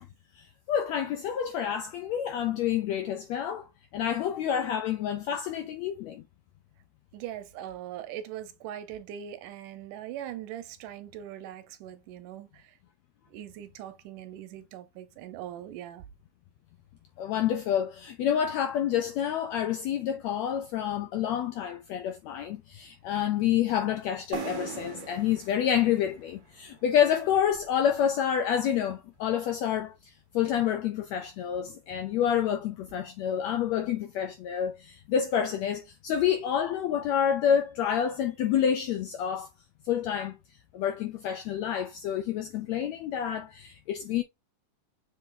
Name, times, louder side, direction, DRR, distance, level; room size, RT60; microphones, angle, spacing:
voice 1, 0.4-3.7 3.9-6.2 17.2-39.5 39.8-40.4 40.7-44.2, left 9 dB, 80° left, 1.5 m, -28 dB
voice 2, 7.1-12.8 13.3-16.1, right 11 dB, 75° right, 2.3 m, -41 dB
sound 1, 24.3-28.0, right 6 dB, 55° right, 1.0 m, -41 dB
7.5 x 3.5 x 3.8 m
omnidirectional pair, 3.9 m